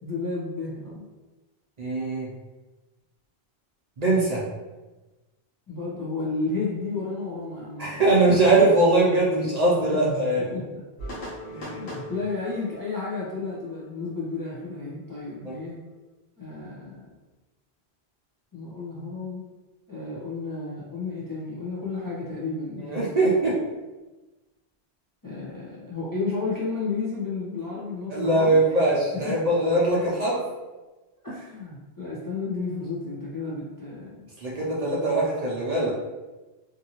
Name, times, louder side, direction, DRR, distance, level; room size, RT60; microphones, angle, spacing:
voice 1, 0.0-1.0 5.7-8.0 9.8-10.8 11.7-15.8 16.4-17.1 18.5-19.4 19.9-23.0 25.2-28.6 29.1-29.4 31.2-34.3, left 3 dB, 30° left, -7 dB, 0.4 m, -32 dB
voice 2, 1.8-2.3 4.0-4.4 7.8-10.5 11.5-11.8 15.4-15.5 22.9-23.6 28.1-30.4 34.4-35.9, right 2 dB, 50° right, -5 dB, 0.6 m, -22 dB
sound 1, 11.0-14.7, equal, 80° left, 1.2 m, -40 dB
2.6 x 2.6 x 2.8 m, 1.2 s
omnidirectional pair, 1.0 m